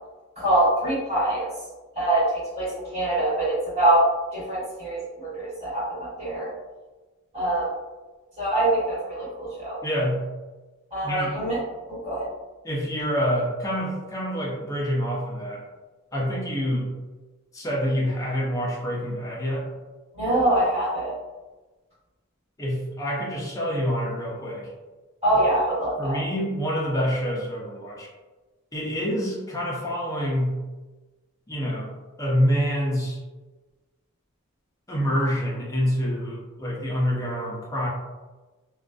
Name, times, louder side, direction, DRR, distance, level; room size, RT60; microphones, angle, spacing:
voice 1, 0.4-1.5 1.9-6.5 7.3-7.8 8.4-9.8 10.9-11.6 11.9-12.3 20.1-21.1 25.2-26.2, right 1 dB, 30° right, -10 dB, 1.3 m, -24 dB
voice 2, 9.8-10.3 11.0-11.3 12.6-15.6 16.1-16.9 17.5-19.7 22.6-24.7 26.0-28.1 28.7-30.6 31.5-31.9 32.2-33.2 34.9-37.9, equal, 15° left, -4 dB, 0.5 m, -26 dB
2.5 x 2.3 x 2.3 m, 1.2 s
head